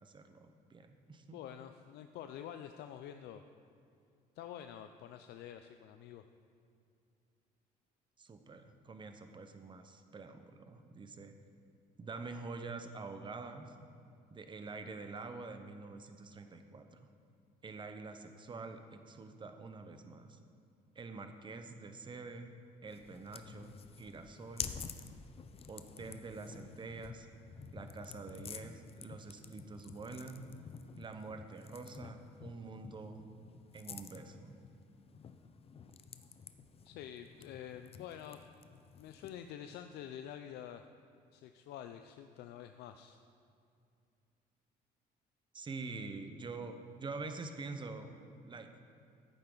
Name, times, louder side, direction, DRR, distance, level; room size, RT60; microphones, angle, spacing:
voice 1, 0.0-1.4 8.2-11.3 12.0-13.7 14.3-17.0 17.6-20.4 20.9-22.5 22.8-24.7 25.7-27.3 27.7-30.4 31.0-33.2 33.7-34.5 45.5-48.1 48.4-48.7, right 3 dB, 30° right, 7 dB, 0.9 m, -46 dB
voice 2, 1.3-3.4 4.4-6.2 36.8-38.5 39.0-40.9 41.3-43.2, left 10 dB, 80° left, 8 dB, 0.5 m, -48 dB
sound 1, 22.9-39.5, left 6 dB, 35° left, 0.6 m, -50 dB
14.5 x 8.8 x 3.9 m, 2.4 s
cardioid pair, 110°, 17 cm